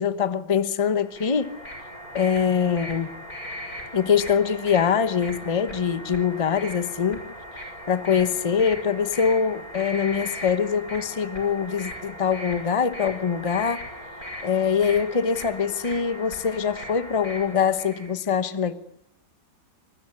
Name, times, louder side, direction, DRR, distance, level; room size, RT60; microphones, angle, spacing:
voice 1, 0.0-1.6 2.1-3.1 3.9-7.3 7.9-13.9 14.4-18.7, left 7 dB, 25° left, 0.8 m, -23 dB
sound 1, 1.0-18.1, equal, 50° left, 7.4 m, -38 dB
26.5 x 20.0 x 9.8 m
omnidirectional pair, 2.0 m